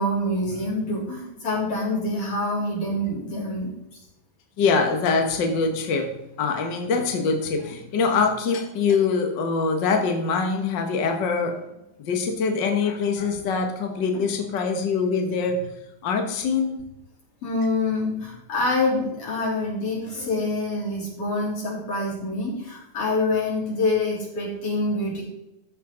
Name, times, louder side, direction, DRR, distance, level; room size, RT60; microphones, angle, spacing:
voice 1, 0.0-4.0 17.4-25.2, left 2 dB, 45° left, -5 dB, 4.3 m, -26 dB
voice 2, 4.6-6.1 6.4-11.5 12.0-15.6 16.0-16.8, left 5 dB, 70° left, 4 dB, 1.1 m, -23 dB
13.5 x 6.6 x 3.8 m, 0.89 s
omnidirectional pair, 3.9 m